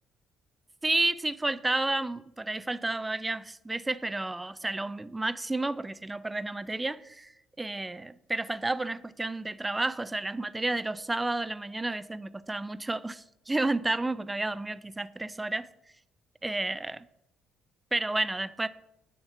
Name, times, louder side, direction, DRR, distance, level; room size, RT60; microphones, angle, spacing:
voice 1, 0.8-7.3 7.6-15.7 16.4-17.0 17.9-18.7, right 2 dB, 15° right, 15 dB, 0.4 m, -31 dB
8.6 x 2.9 x 5.6 m, 0.82 s
supercardioid pair, 60°, 0 cm